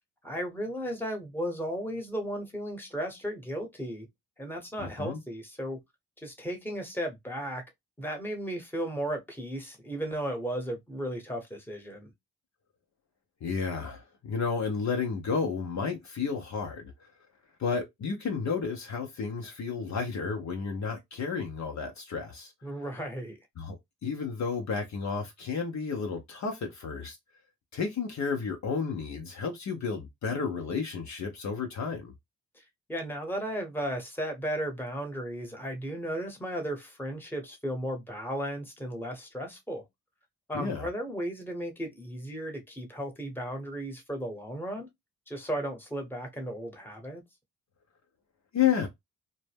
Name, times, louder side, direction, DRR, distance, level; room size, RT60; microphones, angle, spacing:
voice 1, 0.2-4.1 4.4-5.8 6.2-7.6 8.0-12.1 22.6-23.4 32.5-32.6 32.9-39.8 40.5-44.9 45.3-47.2, equal, 5° left, 1.0 m, -35 dB
voice 2, 4.8-5.2 13.4-16.9 17.6-22.5 23.6-23.8 24.0-27.2 27.7-32.1 40.5-40.9 48.5-48.9, left 5 dB, 55° left, 0.7 m, -32 dB
2.1 x 2.0 x 3.3 m
supercardioid pair, 45°, 35 cm